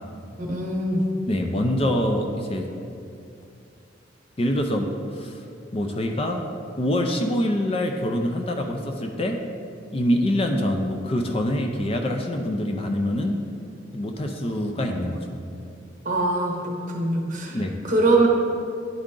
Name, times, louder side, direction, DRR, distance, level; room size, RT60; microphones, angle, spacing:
voice 1, 0.4-1.1 16.0-16.5 16.9-17.6 17.8-18.3, right 2 dB, 40° right, 0 dB, 1.0 m, -22 dB
voice 2, 1.3-2.7 4.4-4.9 5.1-5.4 5.7-6.5 6.8-9.4 9.9-13.4 13.9-15.4 17.5-17.8, left 1 dB, 30° left, 3 dB, 0.4 m, -25 dB
10.0 x 3.7 x 3.7 m, 2.5 s
head